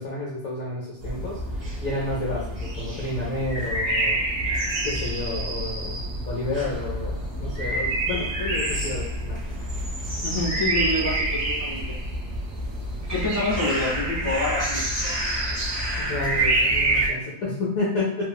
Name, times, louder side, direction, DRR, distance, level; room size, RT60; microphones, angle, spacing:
voice 1, 0.0-4.2 4.8-9.4 16.0-18.3, left 2 dB, 65° left, -5 dB, 0.9 m, -30 dB
sound 1, 1.0-17.1, right 1 dB, 55° right, 0.4 m, -27 dB
voice 2, 10.2-11.8 13.1-15.0, left 2 dB, 10° right, -9 dB, 1.1 m, -27 dB
3.1 x 2.4 x 2.3 m, 0.77 s
omnidirectional pair, 2.0 m